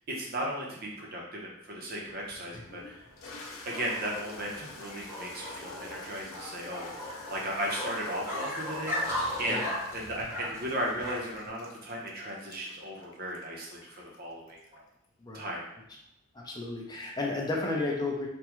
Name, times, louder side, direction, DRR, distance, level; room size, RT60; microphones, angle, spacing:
voice 1, 0.2-3.0 3.6-6.9 7.3-9.0 9.4-14.8 15.3-15.6, right 1 dB, 50° right, -2 dB, 0.7 m, -36 dB
sound 1, 2.1-11.5, left 1 dB, 10° right, 0.8 m, -37 dB
Toilet flush, 2.6-15.0, left 3 dB, 90° left, 0.5 m, -49 dB
voice 2, 15.2-15.5 16.3-18.3, left 2 dB, 20° left, -2 dB, 0.6 m, -32 dB
3.5 x 2.2 x 3.0 m, 0.82 s
head